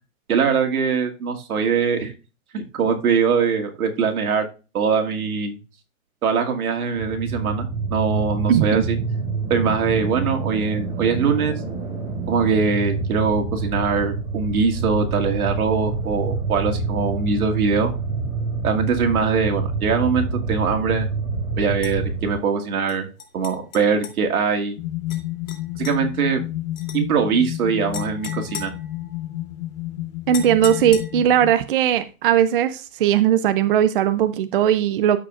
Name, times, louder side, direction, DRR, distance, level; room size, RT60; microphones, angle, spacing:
voice 1, 0.3-2.1 2.5-4.5 4.7-5.6 6.2-9.0 9.5-11.5 12.3-17.9 18.6-21.1 21.6-23.1 23.3-24.8 25.8-26.4 26.9-28.7, right 5 dB, 85° right, 4 dB, 2.2 m, -22 dB
sound 1, 6.9-22.4, right 3 dB, 15° right, 2.4 m, -26 dB
voice 2, 8.5-8.8 30.3-35.2, right 10 dB, 40° right, 12 dB, 0.5 m, -18 dB
sound 2, 21.8-22.0 22.9-24.2 25.1-25.2 25.5-26.0 26.8-27.0 27.9-29.4 30.3-31.4, left 6 dB, 80° left, 2.8 m, -37 dB
sound 3, 24.8-31.5, left 15 dB, 60° left, 0.9 m, -31 dB
13.5 x 4.8 x 2.4 m, 0.31 s
hypercardioid pair, 160°, 42 cm